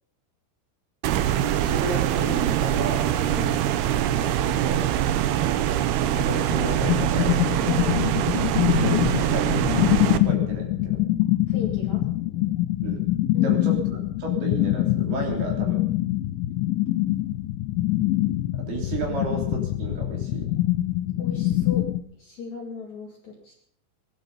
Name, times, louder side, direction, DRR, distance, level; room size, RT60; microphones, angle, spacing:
sound 1, 1.0-10.2, right 11 dB, 85° right, 2.3 m, -23 dB
voice 1, 1.4-3.1 4.4-4.9 6.3-7.3 8.7-9.7 10.1-11.0 12.8-13.0 13.4-15.8 18.7-20.5, right 3 dB, 55° right, 1 dB, 5.2 m, -33 dB
voice 2, 3.2-3.6 7.6-8.2 11.5-12.0 13.3-13.6 21.2-21.9 22.2-23.6, left 5 dB, 45° left, -1 dB, 2.9 m, -37 dB
sound 2, 6.2-22.0, left 15 dB, 80° left, 3.2 m, -24 dB
20.5 x 12.5 x 5.6 m, 0.64 s
omnidirectional pair, 5.9 m